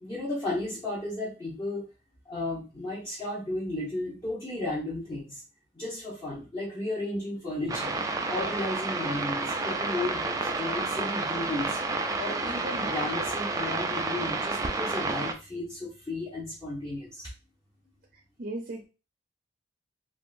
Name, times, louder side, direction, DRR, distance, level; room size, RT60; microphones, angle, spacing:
voice 1, 0.0-1.9 2.2-5.4 5.7-8.0 8.3-11.8 12.2-17.3, left 2 dB, 25° left, -8 dB, 1.0 m, -34 dB
sound 1, 7.7-15.3, right 3 dB, 20° right, 0.3 m, -30 dB
voice 2, 18.1-18.8, right 2 dB, 55° right, 1 dB, 0.6 m, -37 dB
3.6 x 2.4 x 2.5 m, 0.30 s
head